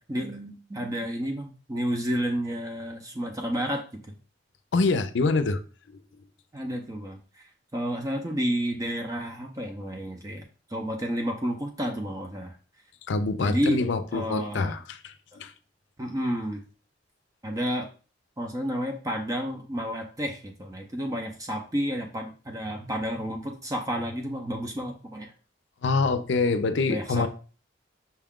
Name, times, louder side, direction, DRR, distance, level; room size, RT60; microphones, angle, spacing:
voice 1, 0.0-4.0 6.5-7.4 7.7-12.6 13.4-13.8 14.1-14.7 15.3-15.4 16.0-16.6 17.4-17.9 18.4-25.3 26.9-27.3, equal, 20° right, 0.5 m, -31 dB
voice 2, 4.7-5.6 5.9-6.0 13.1-15.5 25.8-27.3, left 3 dB, 70° left, 0.5 m, -25 dB
5.5 x 2.3 x 3.6 m
head